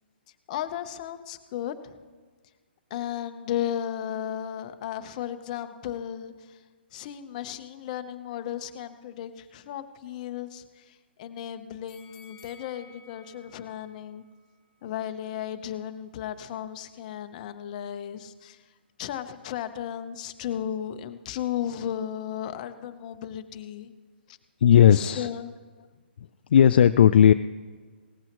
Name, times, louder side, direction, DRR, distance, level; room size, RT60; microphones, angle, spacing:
voice 1, 0.5-2.0 2.9-6.6 6.9-14.2 14.8-18.6 19.0-23.9 24.3-24.4 24.9-25.5, left 10 dB, 40° left, 9 dB, 0.9 m, -35 dB
sound 1, 11.9-15.0 15.4-15.5, left 4 dB, 5° left, 4.8 m, -55 dB
voice 2, 24.6-25.3 26.5-27.3, left 9 dB, 60° left, 11 dB, 0.4 m, -16 dB
18.5 x 15.0 x 3.1 m, 1.5 s
hypercardioid pair, 135°, 6 cm